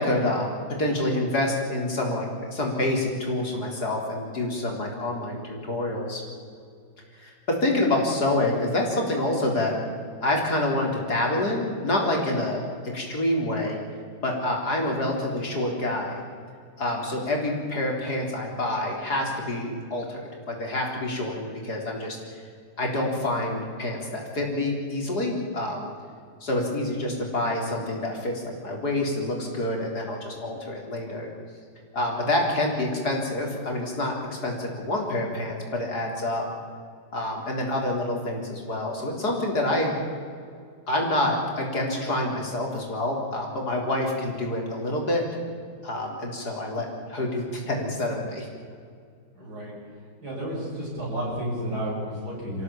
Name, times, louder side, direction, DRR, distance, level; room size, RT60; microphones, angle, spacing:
voice 1, 0.0-6.2 7.2-9.7 10.2-13.8 14.2-16.2 16.8-22.4 22.8-25.9 26.4-31.3 31.9-36.5 37.1-39.9 40.9-45.2 45.8-48.5, left 1 dB, 75° left, 0 dB, 4.5 m, -27 dB
voice 2, 49.3-49.8 50.2-52.6, equal, 75° right, -4 dB, 7.2 m, -31 dB
25.5 x 16.0 x 8.7 m, 2.2 s
omnidirectional pair, 1.7 m